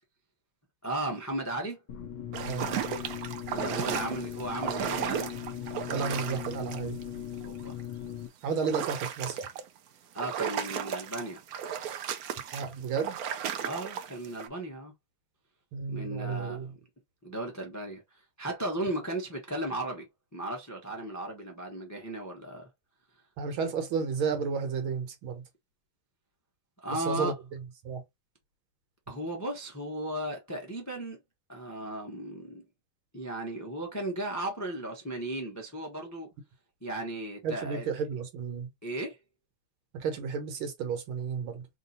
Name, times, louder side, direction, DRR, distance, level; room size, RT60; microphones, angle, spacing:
voice 1, 0.8-1.8 3.5-5.3 7.4-7.7 10.1-11.4 13.6-14.9 15.9-16.7 17.2-20.0 20.3-22.7 26.8-27.3 29.1-31.2 31.5-32.6 33.1-36.3 36.8-37.9 38.8-39.2, right 1 dB, 25° left, 0.3 m, -35 dB
sound 1, 1.9-8.3, left 10 dB, 65° left, 1.2 m, -39 dB
sound 2, 2.3-7.0 7.4-7.8 8.5-9.7 10.2-14.5, right 8 dB, 90° right, 0.8 m, -35 dB
voice 2, 5.9-7.0 8.4-9.5 12.5-13.2 15.7-16.7 23.4-25.4 26.9-28.0 37.4-38.7 39.9-41.7, right 6 dB, 75° right, 1.8 m, -32 dB
3.7 x 2.6 x 4.1 m
omnidirectional pair, 2.4 m